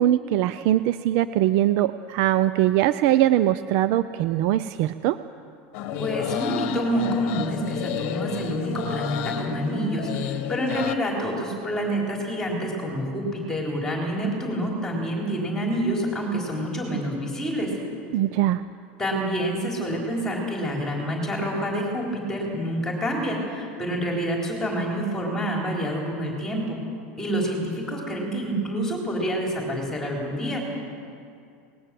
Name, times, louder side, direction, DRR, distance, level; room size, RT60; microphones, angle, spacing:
voice 1, 0.0-5.2 18.1-18.6, right 13 dB, 45° right, 13 dB, 0.5 m, -21 dB
sound 1, 5.7-10.9, left 8 dB, 45° left, 1.3 m, -31 dB
voice 2, 6.0-17.7 19.0-26.8 27.2-30.6, equal, 10° left, -1 dB, 3.9 m, -27 dB
25.0 x 20.0 x 7.6 m, 2.4 s
supercardioid pair, 175°, 6 cm